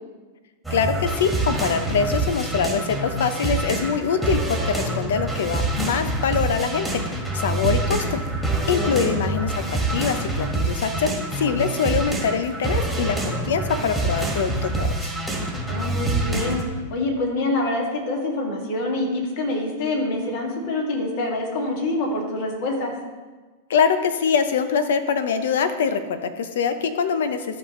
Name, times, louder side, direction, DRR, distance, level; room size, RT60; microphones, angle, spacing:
sound 1, 0.6-16.6, right 2 dB, ahead, 1.7 m, -26 dB
voice 1, 0.7-8.2 8.7-15.1 23.7-27.5, left 6 dB, 80° left, 10 dB, 0.8 m, -24 dB
voice 2, 8.5-9.1 15.7-16.6 16.9-22.9, left 2 dB, 60° left, -1 dB, 2.3 m, -26 dB
13.0 x 5.4 x 3.2 m, 1.3 s
hypercardioid pair, 130°, 0 cm